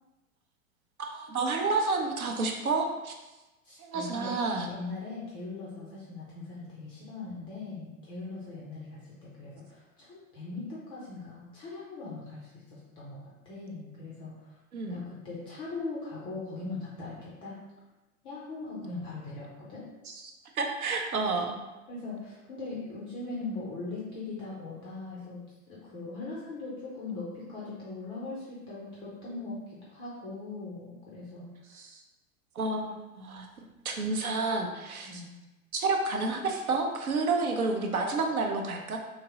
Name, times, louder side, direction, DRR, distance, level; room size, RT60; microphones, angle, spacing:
voice 1, 1.0-3.1 3.8-4.7 14.7-15.0 20.1-21.6 31.7-32.0 32.6-33.5 33.8-35.2 35.7-39.0, right 3 dB, 75° right, 3 dB, 0.7 m, -30 dB
voice 2, 3.6-4.4 4.7-14.6 14.9-17.5 18.2-19.8 21.9-31.8 35.0-35.4, left 3 dB, 15° left, -6 dB, 0.3 m, -40 dB
3.6 x 2.9 x 2.9 m, 1.1 s
figure-of-eight pair, 95°, 43 cm